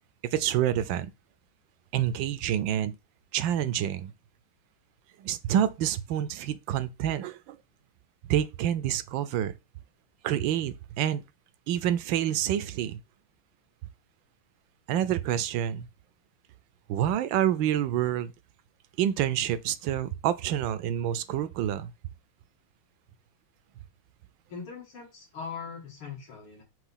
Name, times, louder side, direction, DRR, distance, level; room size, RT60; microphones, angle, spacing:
voice 1, 0.3-1.1 1.9-2.9 3.3-4.1 5.2-7.6 8.3-9.5 10.2-11.2 11.7-13.0 14.9-15.9 16.9-18.3 19.0-21.9, right 11 dB, 75° right, 1.2 m, -27 dB
voice 2, 24.5-26.6, left 5 dB, 75° left, 3.3 m, -40 dB
6.0 x 3.1 x 5.6 m
omnidirectional pair, 2.3 m